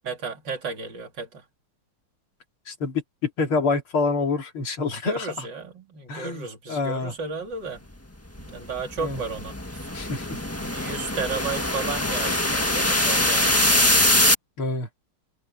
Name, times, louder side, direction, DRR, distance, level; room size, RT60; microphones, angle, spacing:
voice 1, 0.0-1.4 5.0-7.8 8.4-9.5 10.6-14.1, right 4 dB, 55° right, 4.1 m, -33 dB
voice 2, 2.7-5.5 6.1-7.1 9.0-9.2 9.9-10.4 14.6-14.9, left 3 dB, 85° left, 3.8 m, -27 dB
sound 1, 8.3-14.3, left 1 dB, 10° left, 1.3 m, -23 dB
omnidirectional pair, 2.3 m